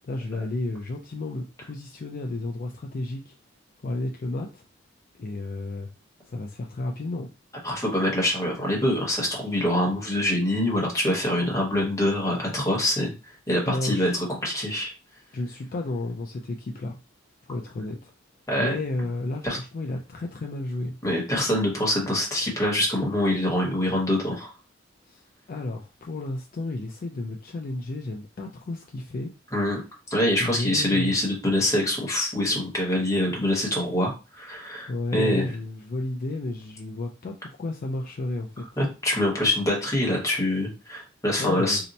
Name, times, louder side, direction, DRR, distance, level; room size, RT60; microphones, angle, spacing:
voice 1, 0.0-3.3 3.8-4.6 5.1-5.9 6.3-7.3 13.7-14.2 15.3-17.0 17.4-18.1 18.6-20.9 25.1-29.3 30.4-31.1 34.9-38.7 41.4-41.8, left 2 dB, 45° left, 0.4 m, -32 dB
voice 2, 7.6-13.1 13.5-14.9 18.5-18.8 19.4-19.6 21.0-24.5 29.5-29.8 30.1-35.5 38.8-41.8, left 1 dB, 15° left, 1.1 m, -25 dB
2.8 x 2.1 x 4.0 m
head